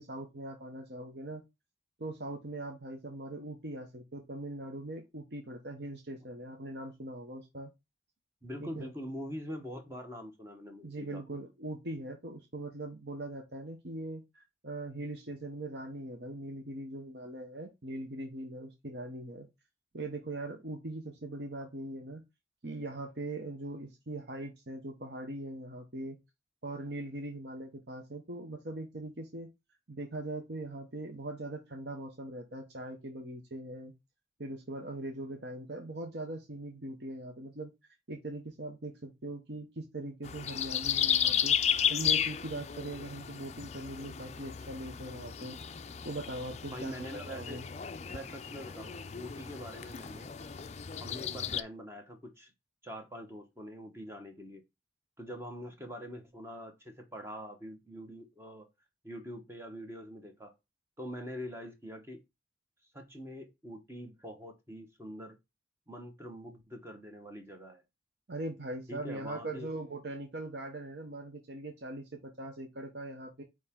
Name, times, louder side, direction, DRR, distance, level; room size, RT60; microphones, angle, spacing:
voice 1, 0.0-1.4 2.0-7.7 8.6-8.9 10.8-19.5 19.9-22.2 22.6-26.2 26.6-29.5 29.9-33.9 34.4-37.7 38.1-41.6 41.9-45.6 46.0-47.6 68.3-73.4, right 1 dB, 55° right, 1.0 m, -41 dB
voice 2, 8.4-11.2 43.1-43.3 46.6-47.6 48.1-50.3 51.0-52.5 52.8-54.6 55.2-58.7 59.0-60.5 61.0-62.2 62.9-65.4 65.9-67.8 68.9-69.7, equal, 15° right, 1.1 m, -44 dB
sound 1, 40.2-51.6, left 8 dB, 35° left, 0.4 m, -34 dB
9.0 x 3.1 x 3.7 m
head